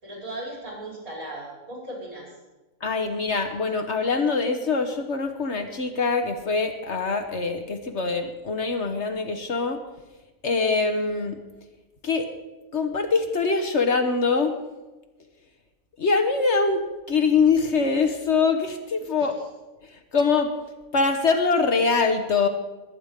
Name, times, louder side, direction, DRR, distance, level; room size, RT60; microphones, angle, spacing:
voice 1, 0.0-2.3 19.2-19.3, right 1 dB, 75° right, -3 dB, 6.1 m, -37 dB
voice 2, 2.8-9.8 10.4-11.4 12.0-12.3 12.7-14.5 16.0-16.8 17.1-19.4 20.1-20.5 20.9-22.5, left 4 dB, 55° left, 6 dB, 1.4 m, -23 dB
21.5 x 8.9 x 5.1 m, 1.1 s
omnidirectional pair, 1.5 m